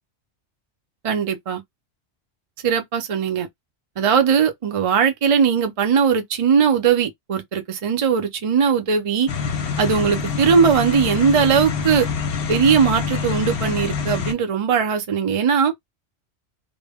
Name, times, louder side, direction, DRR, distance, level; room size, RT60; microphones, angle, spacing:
voice 1, 1.0-1.6 2.6-3.5 4.0-9.3 9.8-12.1 12.5-15.7, right 6 dB, 45° right, 0.4 m, -19 dB
sound 1, 9.3-14.3, left 6 dB, 65° left, 0.7 m, -26 dB
2.1 x 2.0 x 3.4 m
omnidirectional pair, 1.2 m